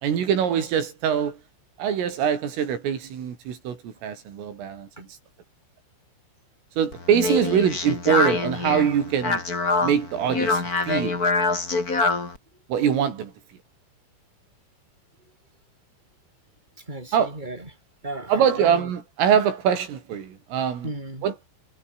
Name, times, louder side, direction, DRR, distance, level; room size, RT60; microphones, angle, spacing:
voice 1, 0.0-1.4 1.8-4.9 6.8-9.4 9.8-11.2 12.7-13.3 17.1-17.3 18.3-20.9 21.2-21.5, right 8 dB, 80° right, 6.3 m, -23 dB
Speech, 6.9-12.4, left 3 dB, 20° left, 2.8 m, -25 dB
voice 2, 16.8-17.7 18.0-18.9 20.8-21.3, right 2 dB, 10° right, 7.9 m, -35 dB
omnidirectional pair, 5.8 m